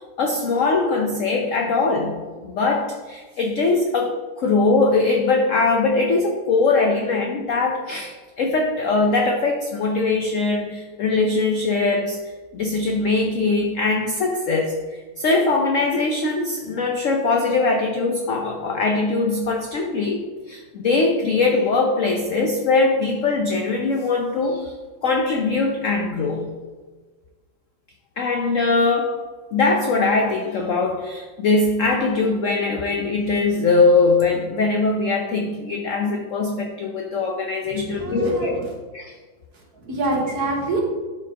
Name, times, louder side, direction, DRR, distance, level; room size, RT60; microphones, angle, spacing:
voice 1, 0.2-24.7 25.0-26.5 28.2-38.5 38.9-39.1, left 3 dB, 70° left, 2 dB, 0.7 m, -21 dB
voice 2, 37.7-38.7 39.7-40.8, right 2 dB, 55° right, -1 dB, 1.7 m, -26 dB
11.5 x 4.6 x 2.8 m, 1.4 s
omnidirectional pair, 2.1 m